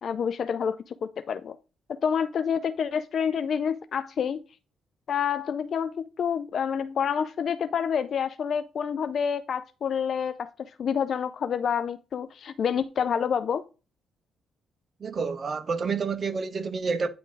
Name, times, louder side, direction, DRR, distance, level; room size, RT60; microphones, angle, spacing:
voice 1, 0.0-1.6 2.0-4.4 5.1-13.6, left 7 dB, 55° left, 0.4 m, -28 dB
voice 2, 15.0-17.1, right 5 dB, 40° right, 0.8 m, -29 dB
9.5 x 3.7 x 3.8 m
cardioid pair, 90°, 0 cm